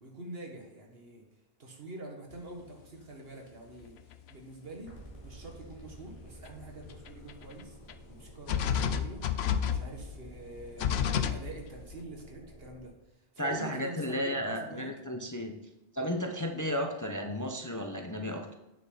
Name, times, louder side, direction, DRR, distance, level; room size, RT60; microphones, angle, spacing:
voice 1, 0.0-1.2 1.6-4.0 4.3-4.9 5.2-7.8 8.1-9.2 9.6-12.9 13.3-14.9, right 2 dB, 65° right, 1 dB, 1.8 m, -45 dB
sound 1, 2.3-2.4 3.8-3.9 4.1-4.3 6.5-6.6 6.8-7.6 7.9-8.0 8.5-12.0, left 8 dB, 80° left, 0.9 m, -30 dB
sound 2, 4.8-12.9, right 1 dB, 35° right, 2.8 m, -52 dB
voice 2, 13.4-15.6 15.9-18.5, equal, 20° left, 2 dB, 0.6 m, -33 dB
9.1 x 6.5 x 4.0 m, 0.96 s
omnidirectional pair, 1.1 m